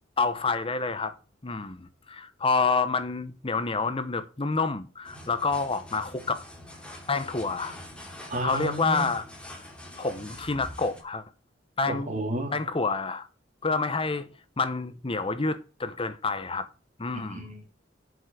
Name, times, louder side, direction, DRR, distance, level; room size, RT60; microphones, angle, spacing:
voice 1, 0.2-1.1 1.4-6.4 7.1-7.8 8.4-9.6 10.0-11.2 11.8-12.1 12.5-13.3 13.6-14.3 14.6-16.7 17.0-17.5, left 4 dB, 30° left, 0.9 m, -28 dB
sound 1, 5.0-11.0, left 1 dB, 5° left, 2.8 m, -45 dB
voice 2, 8.3-9.1 11.9-12.5 17.1-17.6, right 1 dB, 40° right, 3.1 m, -32 dB
8.1 x 7.2 x 6.1 m
head